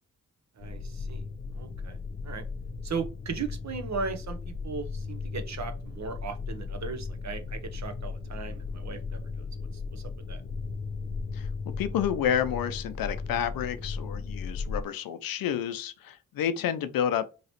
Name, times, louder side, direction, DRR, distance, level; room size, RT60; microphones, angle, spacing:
sound 1, 0.6-14.8, left 4 dB, 30° left, 0.4 m, -36 dB
voice 1, 0.6-1.2 1.5-2.0 2.2-2.4 2.8-4.4 4.6-9.2 9.9-10.0 10.3-10.4, right 5 dB, 55° right, 0.9 m, -37 dB
voice 2, 11.3-17.2, left 9 dB, 85° left, 0.5 m, -30 dB
3.1 x 2.8 x 2.8 m
supercardioid pair, 45°, 34 cm